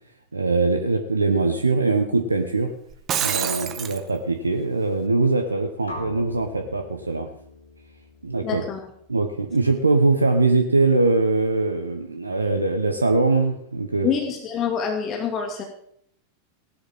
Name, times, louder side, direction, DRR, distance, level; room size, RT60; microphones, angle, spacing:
voice 1, 0.3-2.7 3.2-7.3 8.2-8.6 9.1-14.1, right 3 dB, 85° right, 5 dB, 1.2 m, -22 dB
Shatter, 2.9-4.0, right 9 dB, 30° right, 1.3 m, -26 dB
sound 1, 5.9-9.8, left 2 dB, 80° left, 3.3 m, -42 dB
voice 2, 8.4-8.8 14.0-15.6, left 7 dB, 35° left, 3 dB, 2.5 m, -26 dB
18.5 x 11.5 x 3.7 m, 0.67 s
figure-of-eight pair, 90°, 0 cm